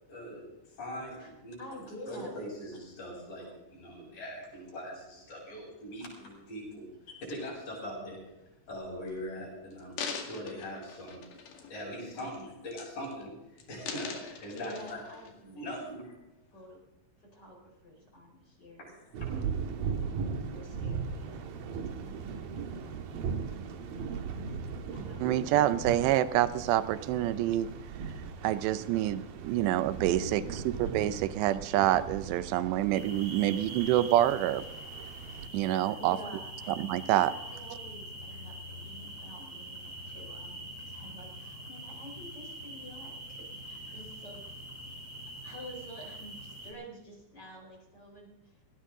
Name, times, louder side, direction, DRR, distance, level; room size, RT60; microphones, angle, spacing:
voice 1, 0.1-1.6 2.1-8.2 8.7-11.2 11.7-15.0 15.5-16.2 18.8-19.3, equal, 45° left, -4 dB, 9.4 m, -41 dB
voice 2, 1.6-2.3 11.9-12.5 14.5-15.7 16.5-16.8 17.2-18.9 19.6-20.0 20.5-21.5 22.0-22.5 23.5-24.5 24.9-25.6 30.8-31.3 35.6-36.7 37.4-44.4 44.8-45.0 45.4-48.6, equal, 25° left, 1 dB, 4.3 m, -49 dB
sound 1, 8.9-9.1 9.7-11.8 12.2-12.4 12.7-13.3 13.6-15.3 15.9-16.0, left 6 dB, 70° left, 4.2 m, -42 dB
sound 2, 19.1-35.5, right 6 dB, 65° right, 2.8 m, -38 dB
voice 3, 25.2-27.7 28.4-34.6 35.5-36.2 36.8-37.3, right 13 dB, 80° right, 14 dB, 2.8 m, -27 dB
sound 3, 32.9-46.7, right 1 dB, 15° right, 5.1 m, -44 dB
19.0 x 19.0 x 3.8 m, 0.99 s
omnidirectional pair, 5.2 m